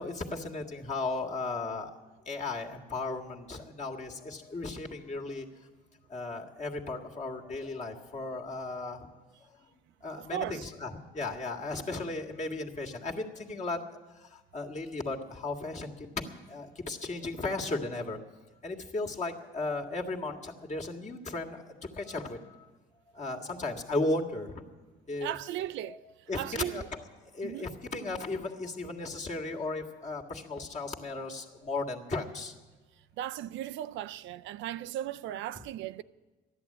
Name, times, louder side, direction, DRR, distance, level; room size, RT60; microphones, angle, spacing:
voice 1, 0.0-1.9 2.3-5.5 6.1-9.1 10.0-13.8 14.2-18.2 18.6-22.7 23.1-24.6 25.1-25.3 25.8-26.0 26.3-27.0 27.3-32.5 35.6-35.7, left 2 dB, 35° left, 1.9 m, -35 dB
voice 2, 10.2-10.6 25.2-26.0 26.4-26.9 27.4-27.7 33.2-36.0, right 12 dB, 65° right, 0.4 m, -36 dB
13.0 x 11.0 x 8.5 m
supercardioid pair, 85°, 21 cm